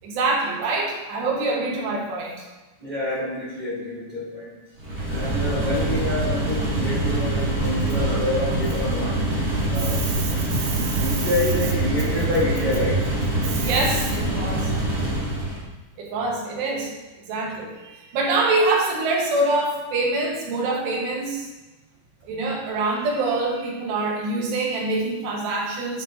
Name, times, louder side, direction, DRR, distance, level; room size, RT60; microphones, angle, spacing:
voice 1, 0.0-2.4 9.8-11.1 13.4-14.7 16.0-16.9 17.3-21.5 22.2-26.0, right 2 dB, 75° right, -1 dB, 3.4 m, -25 dB
voice 2, 2.8-4.5 5.1-9.4 9.7-10.4 10.9-13.0, left 1 dB, 15° right, -9 dB, 1.9 m, -27 dB
sound 1, 4.8-15.6, right 1 dB, 40° right, 1.2 m, -24 dB
9.5 x 7.1 x 2.7 m, 1.2 s
omnidirectional pair, 5.0 m